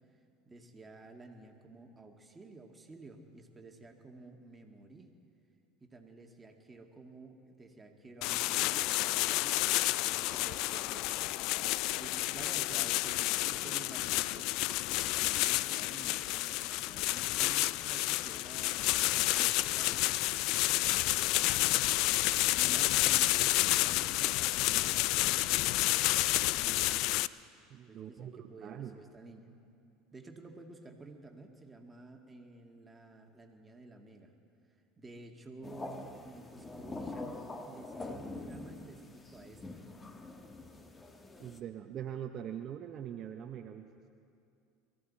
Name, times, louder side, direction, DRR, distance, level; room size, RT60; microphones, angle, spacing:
voice 1, 0.5-5.1 5.8-9.7 10.0-11.1 11.5-11.7 12.0-14.5 14.9-18.8 19.3-20.0 21.2-21.8 22.6-27.1 27.9-29.5 30.1-34.3 35.0-39.8, right 3 dB, 20° right, 2 dB, 2.0 m, -52 dB
sound 1, 8.2-27.3, left 18 dB, 65° left, 0.3 m, -30 dB
voice 2, 27.7-28.9 41.4-43.9, right 10 dB, 45° right, 6 dB, 0.7 m, -42 dB
sound 2, 35.6-41.6, left 2 dB, 20° left, 1.3 m, -45 dB
23.0 x 14.0 x 4.2 m, 2.5 s
hypercardioid pair, 85°, 0 cm